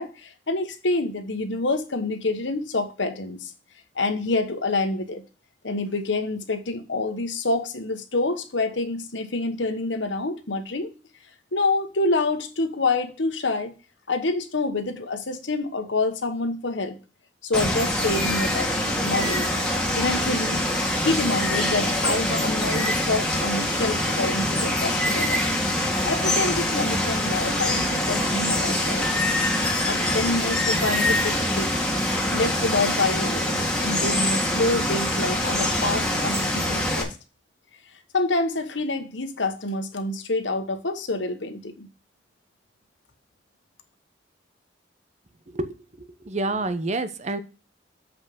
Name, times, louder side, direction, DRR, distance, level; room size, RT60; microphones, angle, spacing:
voice 1, 0.0-3.5 3.9-5.2 5.6-10.9 11.5-13.7 14.1-17.0 17.4-18.8 19.0-19.5 19.9-20.6 21.0-25.6 26.0-29.3 29.8-31.7 32.3-37.1 38.1-41.9, left 2 dB, 90° left, 1.2 m, -27 dB
Water, 17.5-37.0, left 1 dB, 5° left, 1.9 m, -24 dB
voice 2, 45.5-47.4, right 2 dB, 40° right, 0.8 m, -29 dB
7.3 x 5.4 x 5.2 m
head